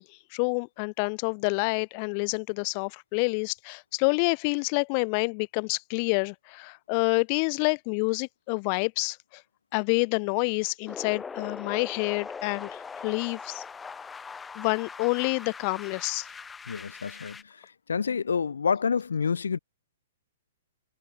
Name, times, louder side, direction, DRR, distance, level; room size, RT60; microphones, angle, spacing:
voice 1, 0.3-9.4 9.7-13.6 14.6-16.3, left 40 dB or more, 40° left, 2.4 m, -28 dB
sound 1, 10.9-17.4, left 5 dB, 10° left, 5.2 m, -41 dB
voice 2, 16.7-19.6, left 6 dB, 80° left, 3.7 m, -28 dB
hypercardioid pair, 130°, 0 cm